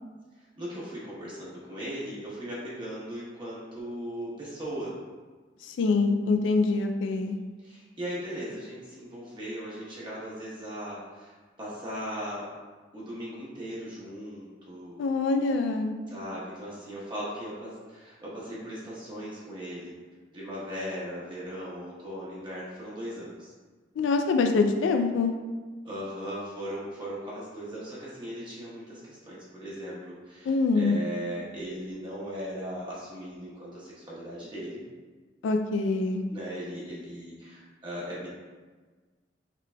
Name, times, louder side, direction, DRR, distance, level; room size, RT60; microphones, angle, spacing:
voice 1, 0.4-4.9 7.6-12.5 12.9-15.0 16.1-19.9 20.3-23.5 25.8-34.8 36.3-38.3, equal, 25° right, -8 dB, 1.0 m, -38 dB
voice 2, 5.8-7.4 15.0-15.9 24.0-25.3 30.5-31.0 35.4-36.2, left 3 dB, 80° left, 5 dB, 0.3 m, -24 dB
5.7 x 3.2 x 2.2 m, 1.4 s
head